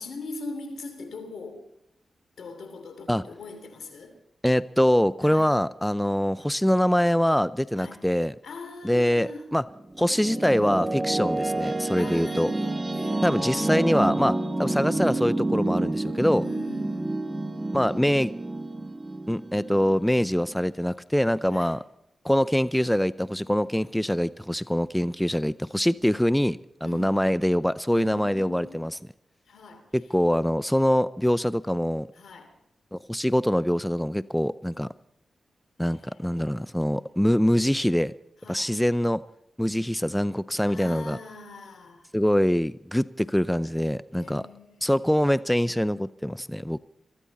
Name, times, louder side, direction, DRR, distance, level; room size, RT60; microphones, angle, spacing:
voice 1, 0.0-1.6 2.4-4.1 5.2-5.6 7.8-8.0 8.4-9.5 10.2-10.9 11.9-14.0 16.4-17.3 21.5-21.8 26.8-27.4 27.9-28.9 29.5-29.9 32.1-32.5 35.8-37.2 38.4-38.7 40.7-42.1 44.1-45.1, left 3 dB, 75° left, 3.0 m, -42 dB
voice 2, 4.4-8.3 8.8-9.6 10.0-12.5 13.2-16.4 17.7-18.3 19.3-21.8 22.2-28.9 29.9-32.1 32.9-34.9 35.8-38.1 38.5-39.2 39.6-41.2 42.1-44.5 44.8-46.8, equal, 5° left, 0.5 m, -24 dB
sound 1, 9.7-20.7, right 2 dB, 25° right, 1.2 m, -29 dB
23.0 x 14.5 x 4.2 m
supercardioid pair, 40°, 0 cm